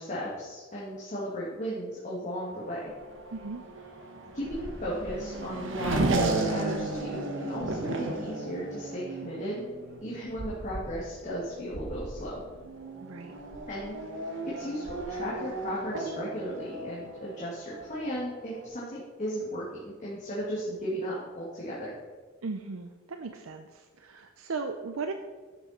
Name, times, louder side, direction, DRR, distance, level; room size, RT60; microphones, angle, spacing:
voice 1, 0.0-2.9 4.3-9.6 10.0-12.4 13.7-14.0 14.5-21.9, equal, 35° left, -7 dB, 2.2 m, -35 dB
Race car auto racing / Accelerating revving vroom, 2.5-18.7, right 2 dB, 65° right, 1.3 m, -35 dB
voice 2, 3.3-3.6 13.0-13.3 22.4-25.1, right 4 dB, 85° right, 6 dB, 0.6 m, -37 dB
11.0 x 7.2 x 4.4 m, 1.4 s
head